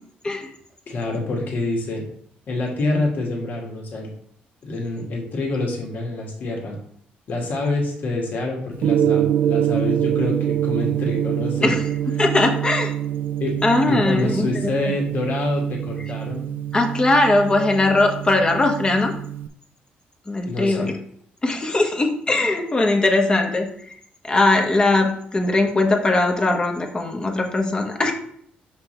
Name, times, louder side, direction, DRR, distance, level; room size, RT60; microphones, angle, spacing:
voice 1, 0.9-2.0 2.5-4.1 4.6-6.8 7.3-11.8 13.4-13.5 13.9-16.5 20.5-20.9, left 2 dB, 55° left, -1 dB, 2.1 m, -26 dB
Gong, 8.8-19.5, right 10 dB, 65° right, 0.5 m, -25 dB
voice 2, 12.2-12.9 13.6-14.5 16.7-19.1 20.3-21.0 21.4-23.9 24.2-28.1, left 2 dB, 25° left, 3 dB, 1.3 m, -20 dB
6.0 x 5.7 x 3.3 m, 0.65 s
cardioid pair, 95°, 4 cm